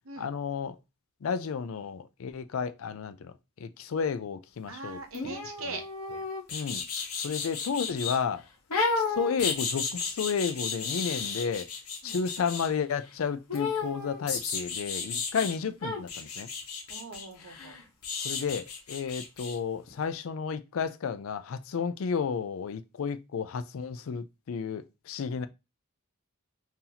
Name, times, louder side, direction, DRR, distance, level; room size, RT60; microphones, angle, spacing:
voice 1, 0.2-0.8 1.2-3.3 3.6-5.0 5.2-5.3 6.5-6.8 7.2-8.4 9.0-11.7 12.0-16.5 18.2-25.5, left 6 dB, 70° left, 0.4 m, -32 dB
voice 2, 4.7-5.8 12.0-12.2 15.4-15.7 16.9-17.7 25.4-25.5, right 3 dB, 70° right, 0.8 m, -41 dB
sound 1, 5.1-8.2 8.7-12.7 13.5-15.5 15.8-19.6 19.9-20.0, left 5 dB, 90° left, 1.0 m, -33 dB
3.9 x 2.8 x 2.8 m
head